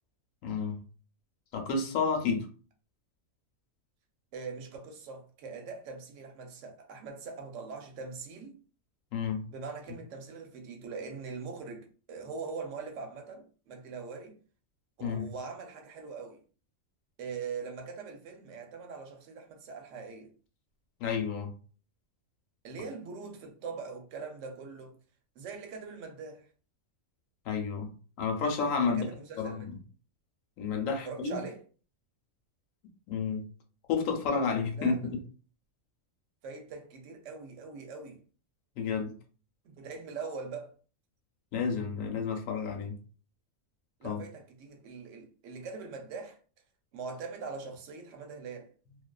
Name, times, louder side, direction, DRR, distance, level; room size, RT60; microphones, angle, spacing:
voice 1, 0.4-0.8 1.5-2.5 9.1-9.4 15.0-15.3 21.0-21.5 27.5-27.9 28.2-29.1 29.4-29.7 30.6-31.4 33.1-33.5 33.9-35.1 38.8-39.1 41.5-43.0 44.0-44.2, left 5 dB, 80° left, 1.0 m, -30 dB
voice 2, 4.3-8.6 9.5-14.4 15.0-16.4 17.2-20.3 22.6-25.0 25.4-26.5 28.8-29.7 30.9-31.6 34.8-35.0 36.4-38.2 39.6-40.7 44.0-46.4 46.9-48.7, right 4 dB, 70° right, 0.9 m, -42 dB
2.3 x 2.3 x 2.2 m
omnidirectional pair, 1.4 m